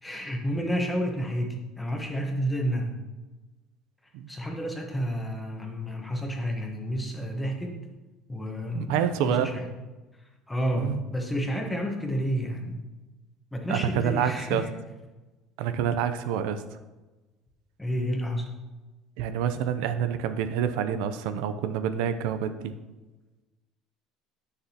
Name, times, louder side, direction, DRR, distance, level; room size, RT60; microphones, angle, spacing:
voice 1, 0.0-2.9 4.3-7.8 8.3-9.7 10.5-12.8 13.5-14.7 17.8-18.5, equal, 5° left, 2 dB, 1.0 m, -30 dB
voice 2, 8.7-9.6 10.8-11.0 13.7-14.6 15.6-16.6 19.2-22.7, right 8 dB, 85° right, 10 dB, 0.5 m, -27 dB
9.0 x 6.7 x 2.9 m, 1.1 s
cardioid pair, 160°, 0 cm